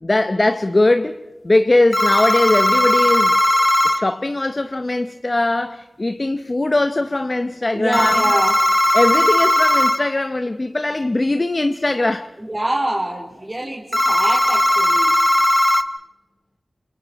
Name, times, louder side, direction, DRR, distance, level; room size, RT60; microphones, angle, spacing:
voice 1, 0.0-3.4 3.8-8.1 8.9-12.3, left 2 dB, 40° left, 0.9 m, -20 dB
sound 1, 1.9-4.0 7.9-10.0 13.9-15.8, left 1 dB, 20° left, 1.6 m, -17 dB
voice 2, 7.7-8.5 12.5-15.1, right 1 dB, 25° right, 3.6 m, -24 dB
28.5 x 28.0 x 4.2 m
wide cardioid pair, 65°, 0 cm